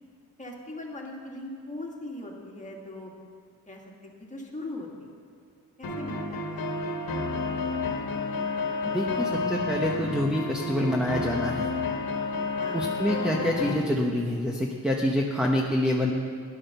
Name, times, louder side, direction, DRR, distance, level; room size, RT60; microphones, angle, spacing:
voice 1, 0.4-3.1 3.7-5.1 5.8-7.6 8.0-8.1 12.6-13.0, left 1 dB, 20° left, -1 dB, 2.2 m, -40 dB
sound 1, 5.8-13.8, left 3 dB, 70° left, 1.6 m, -30 dB
voice 2, 8.9-11.7 12.7-16.1, left 1 dB, ahead, -1 dB, 0.9 m, -26 dB
15.0 x 11.0 x 6.8 m, 2.3 s
wide cardioid pair, 145°, 35 cm